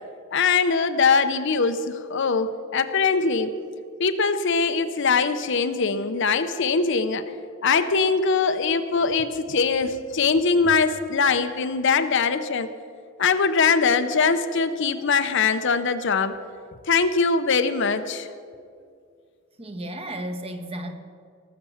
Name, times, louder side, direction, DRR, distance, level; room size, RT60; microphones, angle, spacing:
voice 1, 0.3-3.5 4.0-7.2 7.6-12.7 13.2-16.4 16.9-18.3, left 5 dB, 60° left, 10 dB, 0.7 m, -22 dB
voice 2, 19.6-20.9, right 1 dB, 30° right, 6 dB, 1.1 m, -33 dB
18.5 x 6.9 x 7.1 m, 2.2 s
head